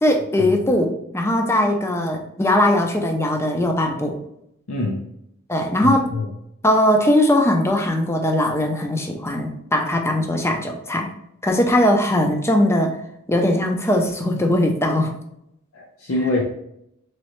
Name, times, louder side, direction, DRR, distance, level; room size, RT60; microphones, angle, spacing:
voice 1, 0.0-4.2 5.5-6.1 6.6-11.1 11.4-13.0 13.3-15.1, left 1 dB, 15° left, 3 dB, 0.4 m, -20 dB
voice 2, 4.7-5.0 5.8-6.3 15.7-16.4, left 2 dB, 80° left, -3 dB, 0.6 m, -24 dB
3.7 x 3.1 x 3.0 m, 0.78 s
head